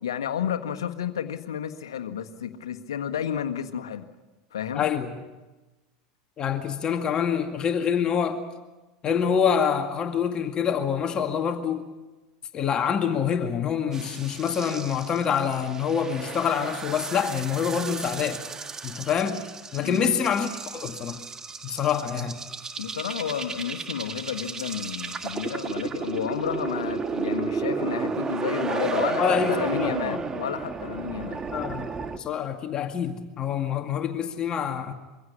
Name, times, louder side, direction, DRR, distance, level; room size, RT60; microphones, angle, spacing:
voice 1, 0.0-4.1 4.5-4.9 19.8-20.1 22.8-31.4, left 9 dB, 80° left, 7 dB, 1.6 m, -31 dB
voice 2, 4.7-5.1 6.4-8.4 9.0-11.9 12.5-18.4 18.8-19.4 19.7-21.2 21.6-22.4 29.2-30.2 31.5-31.8 32.2-34.9, left 7 dB, 35° left, 5 dB, 2.0 m, -26 dB
sound 1, 13.9-32.2, right 5 dB, 25° right, 1.5 m, -33 dB
24.0 x 16.0 x 9.9 m, 1.1 s
hypercardioid pair, 85°, 2 cm